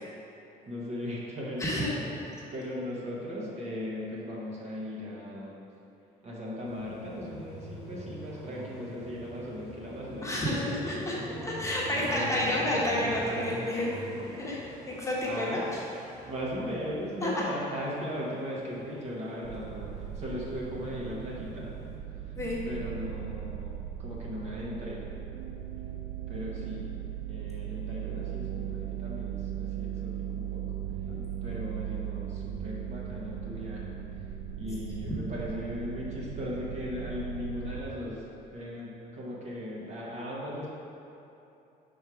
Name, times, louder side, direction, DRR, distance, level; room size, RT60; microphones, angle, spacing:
voice 1, 0.7-2.1 2.5-5.6 6.2-10.8 11.1-11.3 12.0-12.6 15.2-15.7 16.2-21.7 22.3-22.4 22.6-25.0 26.3-26.9 27.2-30.6 31.4-34.0 34.6-38.2 38.5-40.7, equal, 40° right, -5 dB, 1.2 m, -38 dB
Car passing by, 6.6-19.1 19.5-22.0, equal, 5° right, 1.1 m, -44 dB
voice 2, 10.2-11.1 11.4-13.9 14.3-14.6 14.9-15.6 17.2-17.3 22.4-22.6 31.1-31.2 35.1-35.2, left 1 dB, 15° left, -6 dB, 1.1 m, -30 dB
sound 1, 19.4-37.8, right 10 dB, 60° right, 0.5 m, -38 dB
4.6 x 4.5 x 4.8 m, 2.9 s
cardioid pair, 110°, 17 cm